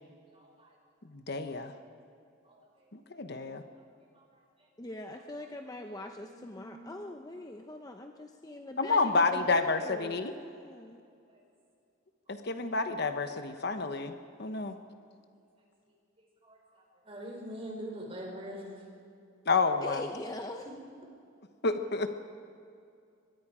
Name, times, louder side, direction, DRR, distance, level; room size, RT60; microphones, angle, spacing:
voice 1, 1.1-1.7 3.1-3.6 8.8-10.3 12.3-14.1 14.4-14.7 19.5-20.0 21.6-22.1, left 3 dB, 55° left, 8 dB, 1.0 m, -29 dB
voice 2, 4.8-11.0 19.8-20.7, left 1 dB, 20° left, 4 dB, 0.7 m, -42 dB
voice 3, 6.2-6.8 14.6-14.7 16.4-16.6 17.0-18.8, equal, 30° right, -1 dB, 5.0 m, -43 dB
24.5 x 21.0 x 4.9 m, 2.4 s
head